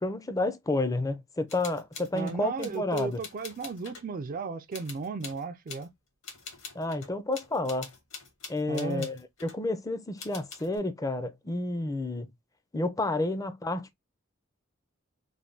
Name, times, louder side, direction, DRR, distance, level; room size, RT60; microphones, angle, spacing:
voice 1, 0.0-3.2 6.7-7.9 8.5-12.3 12.7-13.9, left 2 dB, 15° left, 0.5 m, -30 dB
sound 1, 1.5-4.0 4.7-5.9 6.2-9.6 10.2-10.8, left 5 dB, 65° left, 1.4 m, -45 dB
voice 2, 2.1-5.9 8.7-9.1, right 4 dB, 40° right, 0.4 m, -35 dB
3.4 x 2.2 x 3.7 m
head